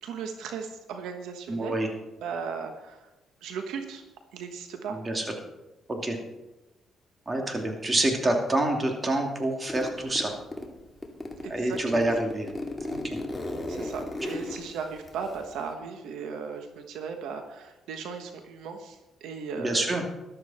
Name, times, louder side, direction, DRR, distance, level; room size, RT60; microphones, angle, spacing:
voice 1, 0.0-1.8 2.2-3.1 3.4-4.0 4.3-5.0 11.4-12.0 13.7-19.9, right 5 dB, 85° right, 6 dB, 1.3 m, -37 dB
voice 2, 1.5-1.9 4.9-5.2 5.9-6.2 7.3-10.3 11.5-12.5 12.9-13.2 19.6-20.0, right 1 dB, 25° right, 2 dB, 2.7 m, -27 dB
Zipper (clothing), 9.7-10.7 11.0-15.7, left 1 dB, 10° left, 2.2 m, -35 dB
14.0 x 12.0 x 4.3 m, 1.0 s
cardioid pair, 90°, 0 cm